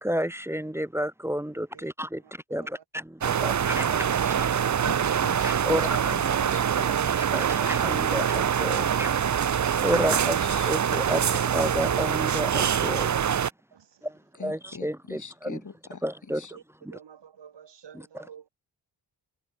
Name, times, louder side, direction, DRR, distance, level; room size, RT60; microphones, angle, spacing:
voice 1, 0.0-2.2 2.5-2.6 3.2-3.9 4.3-4.4 5.4-6.1 7.3-9.1 9.6-11.2 11.5-13.2 14.0-14.1 14.4-15.6 16.0-16.4, equal, 5° right, 0.5 m, -30 dB
voice 2, 1.7-2.3 2.6-2.8 11.2-11.3 13.7-14.2 16.5-18.5, right 8 dB, 70° right, 3.9 m, -51 dB
sound 1, 3.2-13.5, right 8 dB, 40° right, 0.7 m, -25 dB
voice 3, 4.8-6.9 9.9-10.8 14.3-16.5, left 5 dB, 40° left, 3.6 m, -42 dB
cardioid pair, 70°, 44 cm